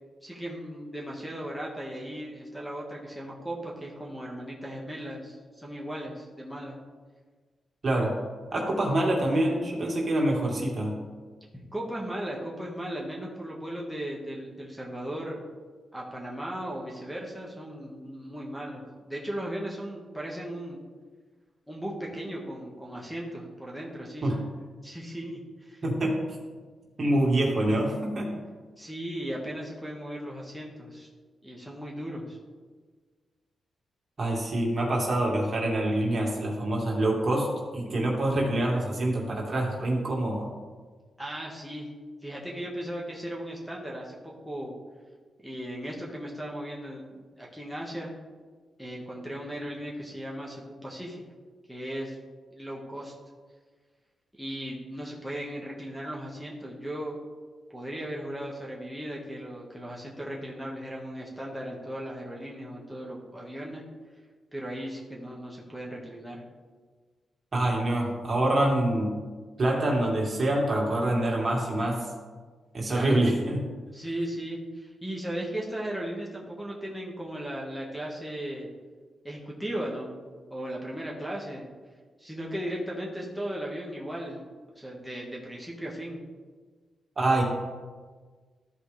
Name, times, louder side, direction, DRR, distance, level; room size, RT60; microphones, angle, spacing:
voice 1, 0.2-6.8 11.7-15.4 15.9-20.8 21.7-24.4 24.8-25.8 28.8-31.1 31.4-32.4 41.2-41.9 42.2-44.7 45.4-48.1 48.8-51.2 51.7-52.2 52.5-53.1 54.3-57.2 57.7-63.8 64.5-66.4 72.9-73.2 73.9-78.7 79.2-80.1 80.5-81.6 82.2-84.4 84.7-86.2, right 1 dB, ahead, -2 dB, 1.6 m, -37 dB
voice 2, 7.8-8.1 8.5-11.0 24.2-24.4 25.8-26.2 27.0-28.3 34.2-37.5 37.7-40.5 67.5-69.1 69.6-72.1 72.7-73.6 87.2-87.4, right 1 dB, 45° right, -2 dB, 2.3 m, -26 dB
13.5 x 5.0 x 3.4 m, 1.5 s
cardioid pair, 70°, 0 cm